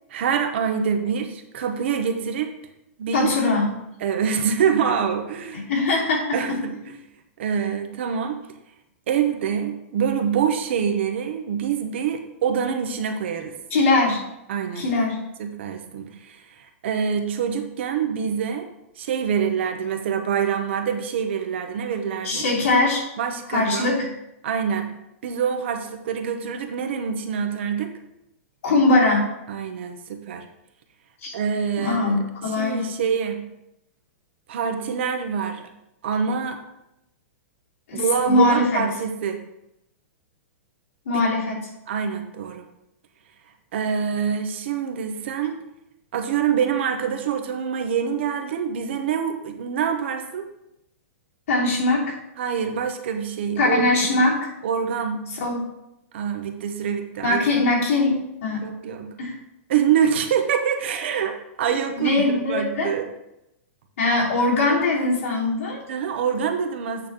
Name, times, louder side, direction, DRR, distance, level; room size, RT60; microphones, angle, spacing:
voice 1, 0.1-2.5 3.0-3.3 4.0-5.6 6.3-6.8 7.4-8.4 9.1-13.6 14.5-14.8 15.4-18.7 19.0-22.5 23.2-24.1 24.4-24.9 25.2-27.9 29.5-30.4 31.3-32.2 32.5-33.4 34.5-35.7 36.0-36.6 37.9-39.4 41.9-42.7 43.7-45.6 46.1-50.4 52.4-53.9 54.2-54.3 54.6-55.2 56.1-57.4 58.6-59.1 59.7-63.1 65.9-67.1, right 7 dB, 50° right, 6 dB, 0.9 m, -25 dB
voice 2, 3.1-3.7 5.5-6.6 13.7-14.2 14.7-15.2 22.2-23.0 23.5-24.1 28.6-29.3 31.2-31.3 31.8-32.9 37.9-38.8 41.0-41.7 51.5-52.2 53.6-54.5 55.3-55.6 57.2-58.6 59.2-59.3 62.0-62.9 64.0-65.8, left 2 dB, 65° left, -4 dB, 3.1 m, -21 dB
8.8 x 3.4 x 6.0 m, 0.85 s
supercardioid pair, 175°, 8 cm